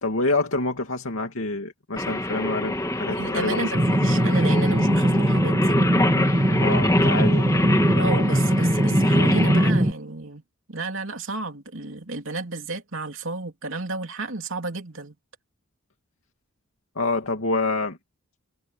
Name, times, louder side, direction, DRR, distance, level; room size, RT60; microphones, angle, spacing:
voice 1, 0.0-3.6 6.6-7.5 17.0-18.0, left 3 dB, 80° left, 2.6 m, -27 dB
Singing, 2.0-9.7, left 1 dB, 15° left, 2.0 m, -26 dB
voice 2, 3.1-5.8 7.9-10.4 10.7-15.1, right 3 dB, 70° right, 3.0 m, -32 dB
sound 1, 3.7-9.9, right 1 dB, 25° right, 2.3 m, -21 dB
head